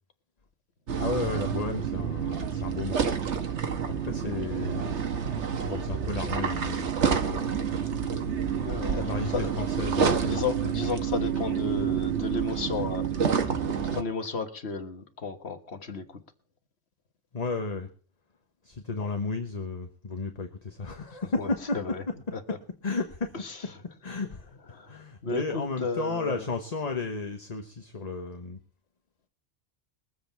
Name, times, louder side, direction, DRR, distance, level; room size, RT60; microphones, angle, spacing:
sound 1, 0.9-14.0, right 7 dB, 85° right, 1.5 m, -28 dB
voice 1, 1.0-3.2 4.0-5.0 5.7-7.8 8.3-8.6 8.9-10.5 17.3-17.9 18.6-22.1 22.5-22.6 22.8-23.3 24.0-24.6 24.9-28.6, left 3 dB, 35° left, 5 dB, 1.3 m, -33 dB
voice 2, 8.6-9.5 10.2-13.2 13.4-13.5 13.8-16.2 21.4-22.0 22.3-22.4 23.3-23.6 24.7-26.5, left 4 dB, 65° left, 7 dB, 1.6 m, -34 dB
22.5 x 7.9 x 4.5 m, 0.41 s
omnidirectional pair, 1.2 m